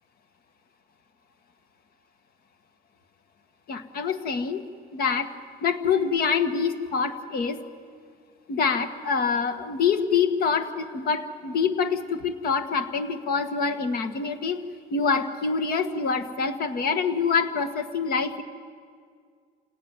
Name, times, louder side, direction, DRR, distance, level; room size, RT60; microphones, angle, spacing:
voice 1, 3.7-4.6 4.9-5.3 5.6-7.6 8.5-14.6 14.9-18.4, left 5 dB, 65° left, 7 dB, 1.7 m, -25 dB
29.0 x 18.0 x 9.7 m, 2.1 s
cardioid pair, 110°, 17 cm